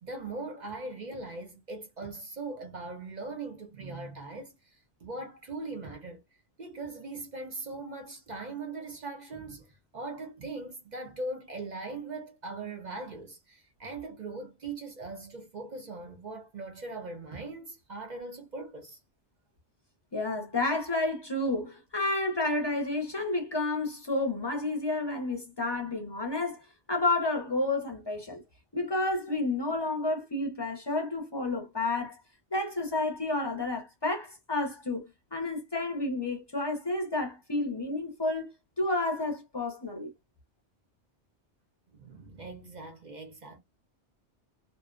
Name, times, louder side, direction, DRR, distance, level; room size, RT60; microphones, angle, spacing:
voice 1, 0.0-6.2 6.6-9.7 9.9-19.0 41.9-43.6, right 3 dB, 50° right, 0.6 m, -40 dB
voice 2, 20.1-28.4 28.7-32.2 32.5-38.5 38.8-40.1, left 2 dB, 30° left, 0.5 m, -30 dB
2.5 x 2.1 x 2.4 m
omnidirectional pair, 1.2 m